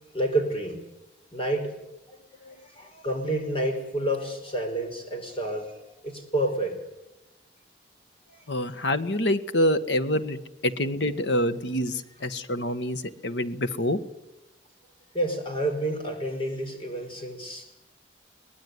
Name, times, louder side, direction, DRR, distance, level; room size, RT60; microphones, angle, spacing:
voice 1, 0.1-0.9 1.3-1.8 2.1-6.8 8.3-8.4 15.1-17.7, right 1 dB, 30° left, 5 dB, 5.0 m, -29 dB
voice 2, 8.5-10.4 10.6-14.0, left 1 dB, 80° left, 10 dB, 1.6 m, -26 dB
23.5 x 19.5 x 9.6 m, 0.96 s
head